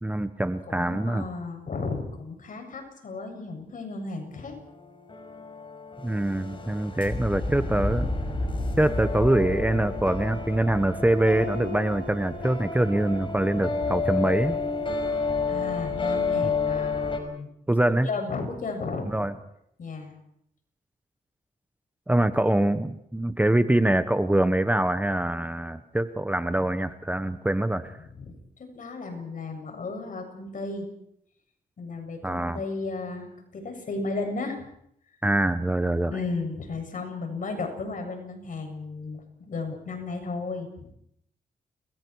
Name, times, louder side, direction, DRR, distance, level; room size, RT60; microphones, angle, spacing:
voice 1, 0.0-1.3 6.0-8.1 8.8-14.6 17.7-18.1 19.1-19.3 22.1-28.0 32.2-32.6 35.2-36.1, right 1 dB, 10° right, 9 dB, 1.1 m, -24 dB
voice 2, 0.7-4.6 15.5-17.5 18.0-19.3 19.8-20.1 28.1-30.9 31.8-33.3 33.5-34.6 36.1-40.9, left 3 dB, 60° left, 5 dB, 7.6 m, -34 dB
sound 1, 4.3-17.2, left 4 dB, 35° left, 5.5 m, -30 dB
30.0 x 23.5 x 4.8 m, 0.74 s
cardioid pair, 100°, 15 cm